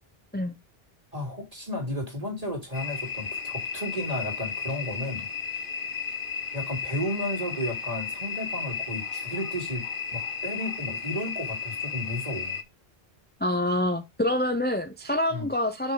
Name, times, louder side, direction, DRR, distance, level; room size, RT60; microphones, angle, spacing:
voice 1, 1.1-5.3 6.5-9.9 10.1-12.6 15.3-15.5, left 1 dB, 35° right, 3.4 m, -33 dB
sound 1, 2.7-12.6, left 6 dB, 60° left, 1.3 m, -34 dB
voice 2, 13.4-15.9, left 1 dB, 10° left, 0.7 m, -26 dB
6.4 x 5.5 x 3.9 m
omnidirectional pair, 1.0 m